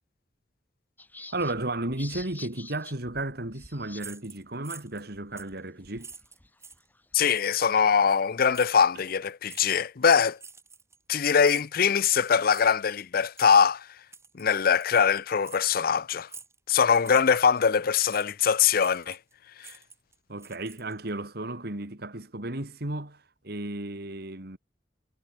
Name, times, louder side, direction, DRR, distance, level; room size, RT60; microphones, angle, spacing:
sound 1, 1.0-4.1 4.4-4.5 4.8-7.2, left 2 dB, 10° left, 1.7 m, -48 dB
voice 1, 1.3-6.1 8.9-9.0 20.3-24.6, right 2 dB, 60° right, 3.0 m, -34 dB
sound 2, 4.0-5.1 5.4-5.6 6.0-6.9 7.3-7.6 8.5-8.9 9.5-9.7 10.4-11.1 11.4-11.8 12.5-12.8 13.3-13.6 14.1-14.5 14.8-14.9 15.4-15.6 16.3-16.6 17.0-17.6 18.1-18.3 18.8-19.3 19.6-21.1, right 5 dB, 15° right, 2.6 m, -47 dB
voice 2, 7.1-10.4 11.1-13.9 14.3-16.3 16.7-19.2 19.6-19.7, left 6 dB, 55° left, 0.6 m, -22 dB
head